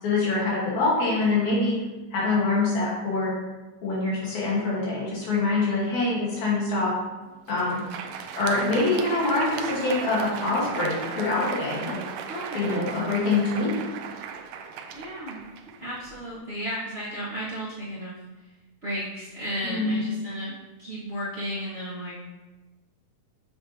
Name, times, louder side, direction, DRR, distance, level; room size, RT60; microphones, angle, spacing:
voice 1, 0.0-1.7 2.1-3.3 3.8-6.9 7.5-7.8 8.4-12.0 12.5-13.8 19.6-20.0, left 3 dB, 65° left, -6 dB, 2.8 m, -25 dB
Crowd, 7.3-16.3, right 7 dB, 85° right, 1.6 m, -36 dB
voice 2, 12.3-12.8 14.9-15.4 15.7-18.2 18.8-20.5 20.8-22.2, equal, 60° right, -11 dB, 0.6 m, -34 dB
8.0 x 5.4 x 2.9 m, 1.1 s
omnidirectional pair, 3.7 m